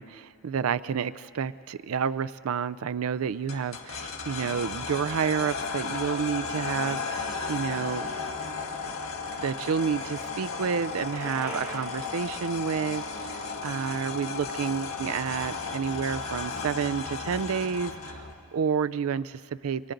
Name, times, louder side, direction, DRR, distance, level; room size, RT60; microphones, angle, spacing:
voice 1, 0.0-8.1 9.4-19.9, right 6 dB, 85° right, 16 dB, 0.4 m, -30 dB
sound 1, 3.5-18.3, left 4 dB, 75° left, 1.7 m, -34 dB
Bicycle, 8.8-14.8, right 2 dB, 35° right, 2.5 m, -45 dB
28.0 x 24.0 x 3.9 m, 2.3 s
head